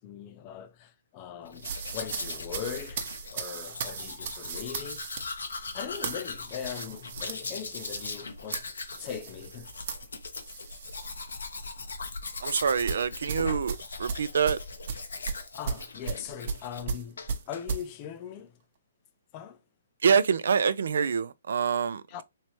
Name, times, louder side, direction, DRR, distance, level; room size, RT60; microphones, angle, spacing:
voice 1, 0.0-5.1 5.7-8.7 9.0-9.7 15.5-17.2 17.5-18.6 19.3-19.6 22.1-22.2, left 8 dB, 30° left, 0.5 m, -40 dB
Domestic sounds home sounds, 1.5-16.9 17.2-17.6, left 3 dB, 80° left, 0.8 m, -39 dB
sound 1, 1.6-11.2 11.5-11.8 12.9-17.9, right 6 dB, 50° right, 0.8 m, -37 dB
voice 2, 12.4-14.6 20.0-22.2, right 6 dB, 70° right, 0.4 m, -26 dB
3.2 x 3.0 x 3.1 m
hypercardioid pair, 140°, 0 cm